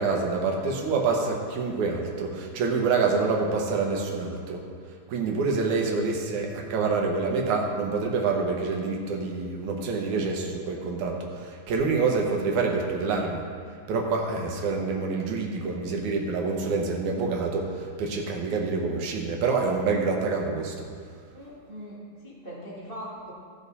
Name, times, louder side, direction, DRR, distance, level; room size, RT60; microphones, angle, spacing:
voice 1, 0.0-4.6 5.1-13.4 13.9-20.7, right 4 dB, 70° right, 0 dB, 2.4 m, -27 dB
voice 2, 21.3-23.3, equal, 50° right, -7 dB, 0.6 m, -41 dB
15.5 x 5.3 x 4.1 m, 2.1 s
omnidirectional pair, 3.6 m